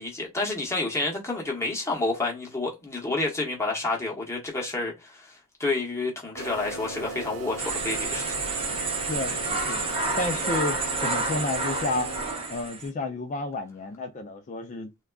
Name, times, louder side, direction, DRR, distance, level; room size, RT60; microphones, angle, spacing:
voice 1, 0.0-8.2, left 2 dB, 10° left, 0.9 m, -29 dB
sound 1, 6.4-12.7, right 2 dB, 65° right, 0.8 m, -37 dB
sound 2, 7.6-12.9, right 3 dB, 25° right, 0.6 m, -29 dB
voice 2, 9.1-9.9 10.2-12.1 12.5-14.9, left 2 dB, 35° left, 0.3 m, -31 dB
3.5 x 2.2 x 2.2 m
head